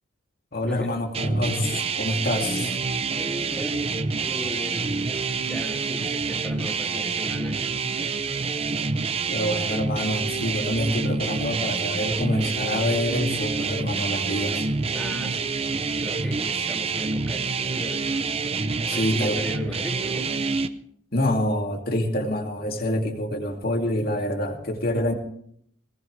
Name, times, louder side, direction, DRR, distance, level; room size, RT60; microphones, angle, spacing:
voice 1, 0.5-2.7 9.3-14.7 18.9-19.4 21.1-25.1, left 1 dB, 50° left, 3 dB, 2.5 m, -26 dB
sound 1, 1.1-20.7, right 4 dB, 30° right, 0.6 m, -27 dB
voice 2, 3.2-3.8 4.2-4.8 5.2-7.7 14.9-15.6 15.9-18.1 18.7-20.3, equal, 5° left, 0 dB, 2.6 m, -37 dB
19.5 x 18.5 x 3.3 m, 0.66 s
head